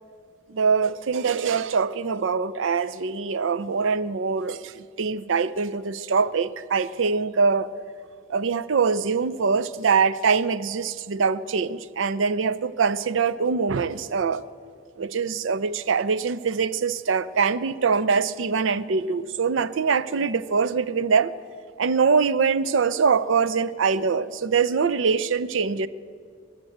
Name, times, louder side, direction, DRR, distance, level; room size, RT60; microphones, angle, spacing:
voice 1, 0.5-7.7 8.3-14.4 15.0-21.3 21.8-25.9, right 5 dB, 65° right, 0.5 m, -23 dB
21.5 x 7.5 x 7.8 m
head